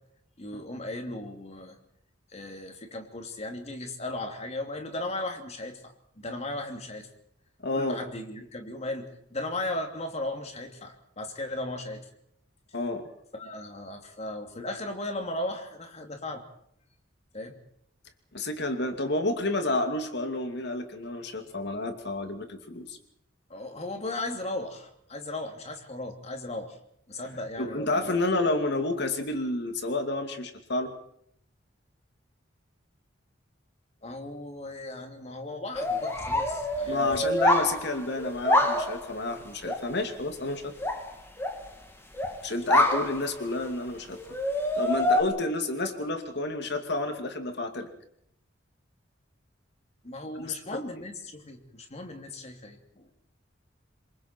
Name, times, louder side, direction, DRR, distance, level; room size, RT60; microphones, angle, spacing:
voice 1, 0.4-1.8 2.3-7.1 7.7-12.1 13.3-16.4 17.3-17.5 23.5-26.8 27.1-28.4 34.0-37.2 50.0-53.1, left 2 dB, 35° left, 4 dB, 2.9 m, -36 dB
voice 2, 7.6-8.0 12.7-13.1 18.3-23.0 27.6-30.9 36.9-40.7 42.4-44.2 44.7-47.9 50.4-50.8, left 2 dB, 65° left, 6 dB, 2.5 m, -30 dB
sound 1, 35.7-39.1 39.6-39.9 40.8-41.7 42.1-42.4 42.7-43.7 44.2-45.2, left 1 dB, 15° left, 2.9 m, -26 dB
27.5 x 23.0 x 4.5 m, 0.70 s
head